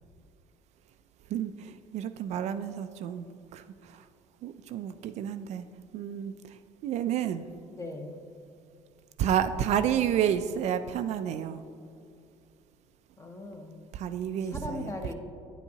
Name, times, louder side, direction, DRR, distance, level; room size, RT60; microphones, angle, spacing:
voice 1, 1.3-4.0 4.4-5.6 5.9-7.5 9.2-11.6 13.9-15.1, right 9 dB, 60° right, 10 dB, 0.4 m, -30 dB
voice 2, 7.7-8.2 13.2-13.8 14.3-15.1, left 2 dB, 20° left, 4 dB, 0.9 m, -39 dB
9.2 x 8.1 x 2.8 m, 2.5 s
cardioid pair, 110°, 13 cm